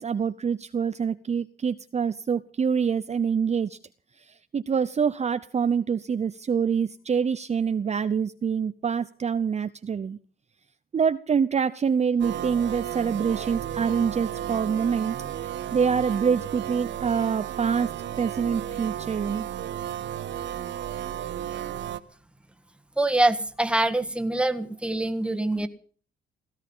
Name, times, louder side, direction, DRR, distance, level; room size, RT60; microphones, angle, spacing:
voice 1, 0.0-3.8 4.2-10.2 10.9-15.2 15.4-19.5, right 6 dB, 35° right, 12 dB, 0.7 m, -26 dB
sound 1, 12.2-22.0, right 10 dB, 65° right, 1.1 m, -33 dB
voice 2, 23.0-25.7, right 2 dB, 5° right, 8 dB, 1.6 m, -24 dB
17.0 x 14.5 x 5.5 m, 0.44 s
cardioid pair, 90°, 20 cm